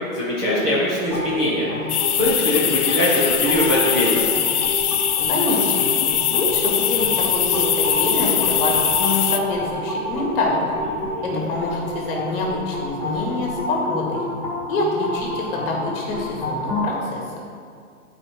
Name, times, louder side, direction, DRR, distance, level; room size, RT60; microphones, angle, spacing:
voice 1, 0.1-1.7 2.2-4.2 11.0-11.4, left 1 dB, 10° right, -10 dB, 0.6 m, -21 dB
sound 1, 1.1-16.9, left 1 dB, 5° left, 1.2 m, -29 dB
sound 2, 1.9-9.4, left 10 dB, 75° left, 0.7 m, -21 dB
voice 2, 5.3-5.9 6.3-10.6 11.2-14.2 14.7-17.2, left 2 dB, 40° left, -2 dB, 2.0 m, -26 dB
8.9 x 4.8 x 4.6 m, 2.2 s
hypercardioid pair, 150°, 45 cm